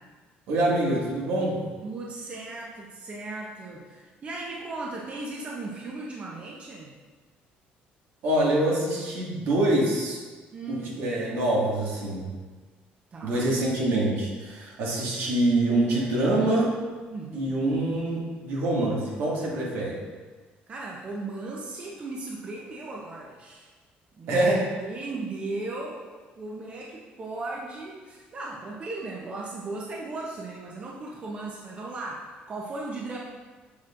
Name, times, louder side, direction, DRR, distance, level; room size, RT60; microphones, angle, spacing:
voice 1, 0.5-1.6 8.2-10.2 10.7-12.3 13.2-16.8 17.3-20.0 24.3-24.7, right 1 dB, 75° right, -4 dB, 1.9 m, -25 dB
voice 2, 1.8-6.9 10.5-11.0 13.1-13.4 17.1-17.6 20.7-23.7 24.1-24.4 24.8-26.1 26.4-33.2, right 2 dB, 35° right, -3 dB, 0.8 m, -37 dB
7.0 x 6.1 x 2.5 m, 1.4 s
cardioid pair, 125°, 4 cm